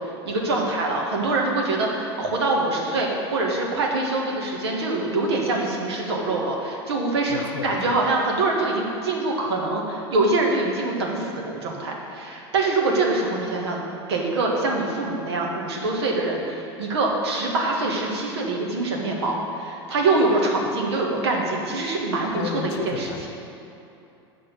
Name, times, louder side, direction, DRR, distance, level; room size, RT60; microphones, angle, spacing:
voice 1, 0.0-13.8 14.1-23.1, right 2 dB, 70° right, 0 dB, 1.5 m, -24 dB
voice 2, 7.3-8.0 22.2-23.3, left 7 dB, 60° left, 6 dB, 0.8 m, -33 dB
6.8 x 6.1 x 6.6 m, 2.8 s
hypercardioid pair, 85°, 14 cm